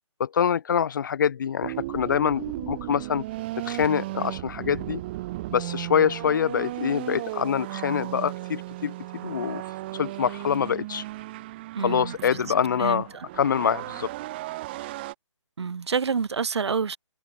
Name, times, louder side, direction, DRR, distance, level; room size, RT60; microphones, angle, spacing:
voice 1, 0.2-3.2 3.6-5.0 5.5-8.9 9.2-9.6 9.9-11.0 11.8-13.1 13.4-14.1, left 8 dB, 40° left, 4.0 m, -25 dB
sound 1, 1.6-15.1, right 18 dB, 20° right, 3.7 m, -35 dB
voice 2, 11.7-12.1 12.8-13.0 15.6-17.0, right 6 dB, 60° right, 3.3 m, -27 dB
hypercardioid pair, 175°, 16 cm